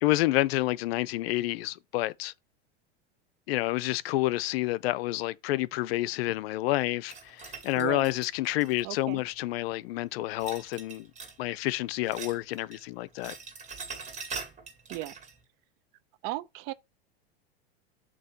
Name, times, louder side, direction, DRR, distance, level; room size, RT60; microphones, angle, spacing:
voice 1, 0.0-2.3 3.5-11.1 11.4-13.3, left 17 dB, 65° left, 0.6 m, -29 dB
sound 1, 7.1-9.2 10.4-11.4 11.7-12.8 13.1-15.4, right 5 dB, 20° right, 2.0 m, -43 dB
voice 2, 7.7-8.2 8.8-9.2 14.9-15.1 16.2-16.7, right 17 dB, 50° right, 0.7 m, -35 dB
7.6 x 2.9 x 5.5 m
supercardioid pair, 120°, 32 cm